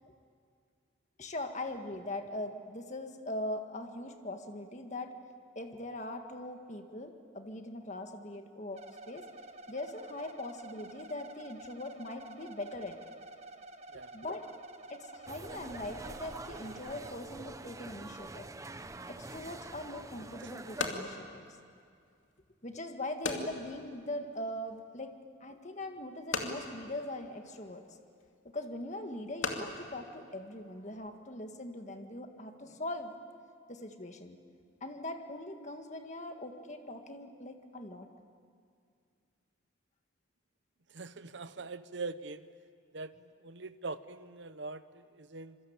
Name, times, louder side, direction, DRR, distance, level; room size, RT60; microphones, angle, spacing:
voice 1, 1.2-5.1 5.5-9.3 9.7-13.0 14.1-14.4 14.9-18.5 19.1-21.4 22.6-28.0 28.4-33.1 33.7-34.4 34.8-38.1, left 1 dB, 35° left, 5 dB, 1.8 m, -41 dB
sound 1, 8.7-17.1, right 2 dB, 35° right, 1.4 m, -50 dB
sound 2, 15.3-20.9, right 2 dB, 15° right, 0.7 m, -46 dB
sound 3, 20.6-31.1, left 3 dB, 75° left, 2.6 m, -42 dB
voice 2, 40.9-42.5 42.9-45.6, right 3 dB, 60° right, 13 dB, 0.9 m, -43 dB
26.5 x 24.0 x 8.8 m, 2.3 s
head